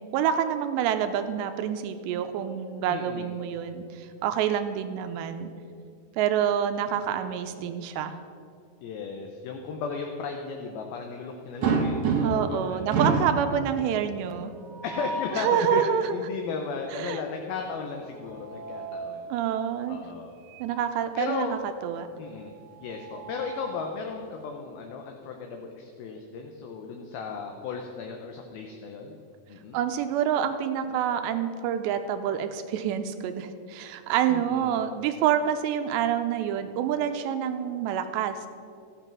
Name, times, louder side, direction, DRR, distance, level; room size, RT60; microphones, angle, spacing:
voice 1, 0.1-5.5 6.2-8.1 12.2-14.5 15.3-16.1 16.9-17.2 19.3-20.0 20.6-22.1 29.7-38.4, right 9 dB, 85° right, 8 dB, 2.9 m, -27 dB
voice 2, 2.9-3.3 8.8-12.9 14.8-15.8 16.1-19.3 19.9-20.3 21.2-21.6 22.2-22.5 22.8-29.1 29.5-29.8 34.3-34.8, left 5 dB, 75° left, 3 dB, 2.4 m, -35 dB
sound 1, 11.6-12.6 12.9-13.4 14.6-15.4 18.0-19.1 20.5-20.7 21.0-21.1 22.7-23.9, right 4 dB, 65° right, 1.8 m, -29 dB
14.0 x 8.9 x 6.0 m, 2.4 s
omnidirectional pair, 4.9 m